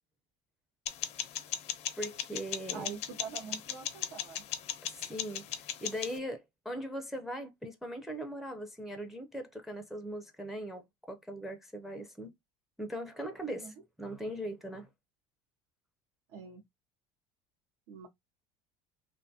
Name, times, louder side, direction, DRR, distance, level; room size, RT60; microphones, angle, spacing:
sound 1, 0.9-6.2, left 10 dB, 50° left, 0.4 m, -38 dB
voice 1, 2.0-2.9 4.8-12.3 12.8-14.9, equal, ahead, 0.4 m, -40 dB
voice 2, 2.7-4.4 13.4-13.7 16.3-16.6 17.9-18.1, right 6 dB, 80° right, 0.6 m, -45 dB
2.5 x 2.2 x 2.6 m
supercardioid pair, 115°, 14 cm